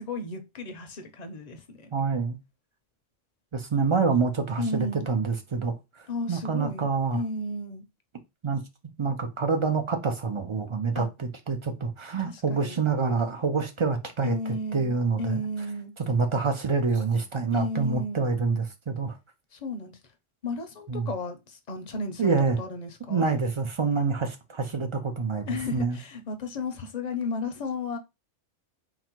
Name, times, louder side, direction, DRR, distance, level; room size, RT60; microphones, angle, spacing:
voice 1, 0.0-1.9 4.6-5.1 6.1-7.8 10.9-11.1 12.2-12.8 14.2-15.9 17.5-18.2 19.5-20.0 20.4-23.3 25.5-28.0, left 2 dB, 45° left, 0.6 m, -33 dB
voice 2, 1.9-2.4 3.5-5.7 6.3-7.2 8.4-8.6 9.0-14.4 14.7-15.4 16.1-19.2 20.9-21.1 22.2-22.6 23.1-26.0, right 4 dB, 45° right, 0.4 m, -26 dB
3.9 x 2.1 x 4.4 m
omnidirectional pair, 1.2 m